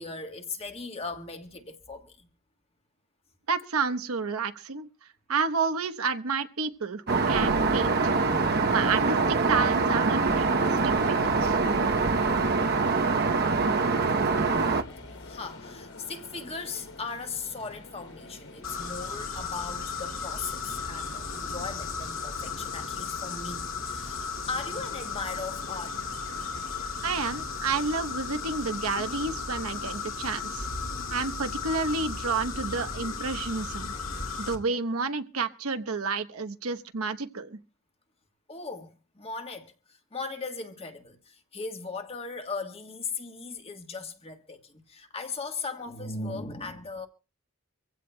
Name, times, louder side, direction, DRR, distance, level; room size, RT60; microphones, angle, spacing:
voice 1, 0.0-2.3 14.7-26.1 38.5-47.1, left 4 dB, 25° left, 1.4 m, -38 dB
voice 2, 3.5-4.9 5.3-8.1 8.7-11.6 27.0-30.7 31.1-34.2 34.5-37.6, right 4 dB, 75° right, 1.0 m, -30 dB
Aircraft, 7.1-14.8, right 4 dB, 45° right, 0.9 m, -24 dB
sound 1, 10.2-30.0, left 2 dB, 80° left, 3.2 m, -47 dB
sound 2, 18.6-34.6, left 5 dB, 60° left, 2.3 m, -35 dB
25.0 x 15.5 x 2.2 m
head